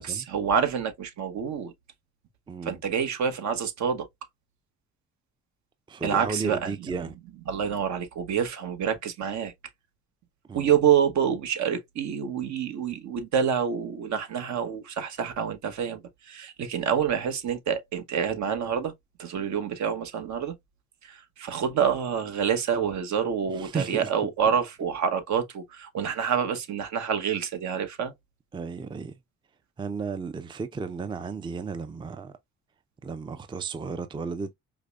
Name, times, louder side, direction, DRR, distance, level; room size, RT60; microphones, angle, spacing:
voice 1, 0.0-1.7 2.6-4.1 6.0-6.7 7.5-9.5 10.5-18.9 19.2-20.5 21.0-28.1, right 7 dB, 65° right, 1.0 m, -27 dB
voice 2, 2.5-2.8 5.9-7.1 10.5-10.7 23.5-24.3 28.5-29.1 29.8-32.3 33.0-34.5, right 4 dB, 15° right, 0.4 m, -34 dB
4.9 x 2.1 x 2.3 m
cardioid pair, 90°, 30 cm